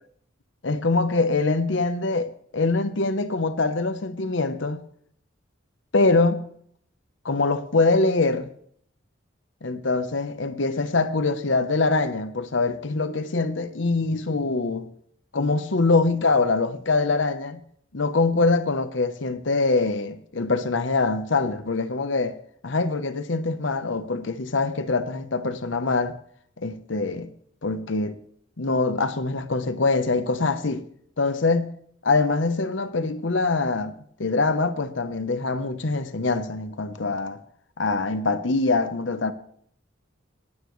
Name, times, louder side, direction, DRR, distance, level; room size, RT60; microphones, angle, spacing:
voice 1, 0.6-4.8 5.9-6.5 7.2-8.5 9.6-14.9 15.3-17.6 17.9-22.4 22.6-26.1 26.6-27.3 27.6-28.2 28.6-30.8 31.2-31.7 32.0-37.4 37.8-39.3, left 3 dB, 70° left, 0.9 m, -24 dB
25.5 x 9.3 x 3.2 m
head